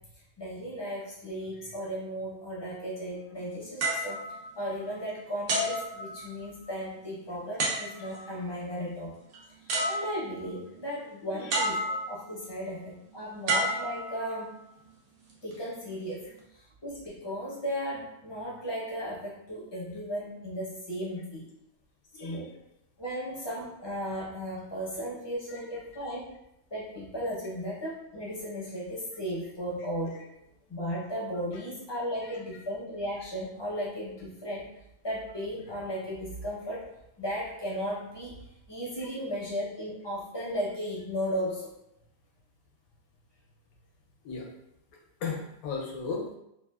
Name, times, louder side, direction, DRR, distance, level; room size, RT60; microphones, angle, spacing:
voice 1, 0.4-4.2 4.6-9.1 9.6-14.5 15.4-16.2 16.5-21.5 22.2-22.5 23.0-26.3 26.7-34.7 35.0-36.9 37.2-38.3 38.7-41.7, equal, 30° left, -6 dB, 0.5 m, -35 dB
sound 1, 3.8-5.0 5.5-6.6 7.6-8.3 9.3-9.4 9.7-10.5 11.5-12.3 13.5-14.6 15.3-15.6, right 1 dB, 80° right, 1.1 m, -31 dB
voice 2, 11.2-11.6 22.1-22.4 25.5-25.6 32.2-32.3 44.2-44.5 45.2-46.3, left 5 dB, 85° left, 0 dB, 1.1 m, -36 dB
2.9 x 2.3 x 2.2 m, 0.81 s
omnidirectional pair, 1.5 m